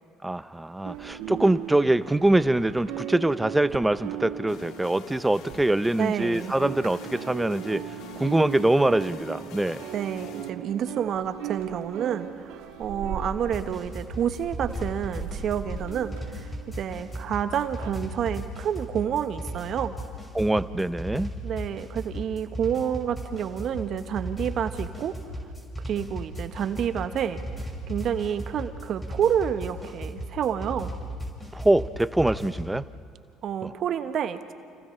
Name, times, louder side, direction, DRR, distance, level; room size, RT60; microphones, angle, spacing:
voice 1, 0.2-9.8 20.3-21.3 31.5-32.8 33.6-33.7, right 1 dB, 10° right, 15 dB, 0.7 m, -24 dB
sound 1, 0.9-6.2 6.4-17.9, right 9 dB, 70° right, 1.6 m, -38 dB
sound 2, 4.5-10.5, left 9 dB, 65° left, 1.0 m, -46 dB
voice 2, 6.0-6.5 9.9-16.5 16.7-19.9 21.4-25.2 25.8-27.4 27.9-30.9 33.4-34.5, right 9 dB, 55° right, 9 dB, 1.2 m, -29 dB
sound 3, 13.5-32.8, equal, 15° left, 6.0 m, -36 dB
29.5 x 29.5 x 3.3 m, 2.2 s
hypercardioid pair, 70°, 0 cm